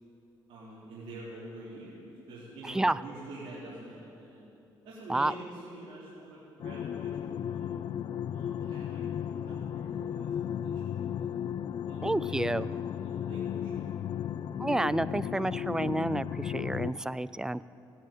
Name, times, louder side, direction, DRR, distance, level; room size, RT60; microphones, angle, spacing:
voice 1, 0.5-2.0 2.3-4.5 4.8-7.7 8.3-11.1 11.8-13.9, right 1 dB, 75° right, -10 dB, 4.1 m, -46 dB
voice 2, 2.6-3.0 5.1-5.3 12.0-12.7 14.6-17.6, right 2 dB, 5° right, 17 dB, 0.3 m, -30 dB
sound 1, 6.6-16.9, left 9 dB, 55° left, 0.5 m, -35 dB
16.5 x 9.9 x 8.8 m, 2.8 s
cardioid pair, 105°, 9 cm